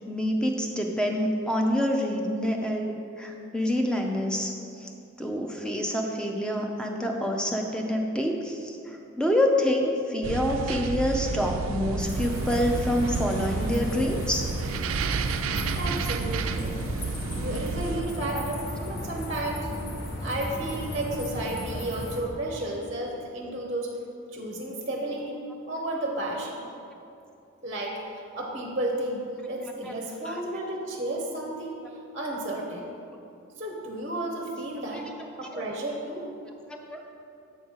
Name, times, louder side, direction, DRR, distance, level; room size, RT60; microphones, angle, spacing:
voice 1, 0.1-4.5 4.8-4.9 5.2-8.8 9.2-14.4 18.3-18.4 30.3-30.4 36.9-37.0, left 1 dB, 5° left, 1 dB, 0.5 m, -27 dB
Cruiseship - inside crew area corridor at night, 10.2-18.0, right 5 dB, 70° right, 0.3 m, -31 dB
sound 1, 12.0-22.2, equal, 45° left, 1.0 m, -35 dB
voice 2, 15.7-16.8 17.3-19.7 20.2-23.9 24.3-25.4 25.7-26.6 27.6-31.8 32.1-32.9 33.6-35.1 35.4-36.3, right 1 dB, 30° right, 0 dB, 0.7 m, -32 dB
7.9 x 3.8 x 6.3 m, 2.7 s
head